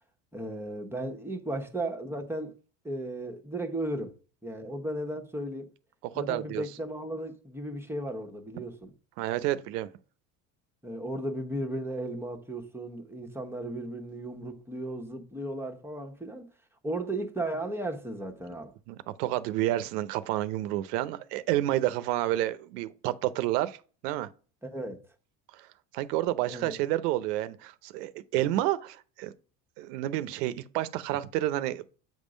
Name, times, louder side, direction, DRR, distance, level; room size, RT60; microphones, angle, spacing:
voice 1, 0.3-2.6 2.8-4.1 4.4-5.7 6.1-8.9 10.8-16.5 16.8-18.7 24.6-25.1 26.5-26.8, right 1 dB, 5° right, 1.1 m, -35 dB
voice 2, 6.0-6.6 9.2-9.9 18.9-23.8 24.0-24.3 25.5-25.7 25.9-29.3 29.8-31.8, right 14 dB, 85° right, 0.7 m, -30 dB
7.7 x 3.7 x 5.1 m
supercardioid pair, 85°, 46 cm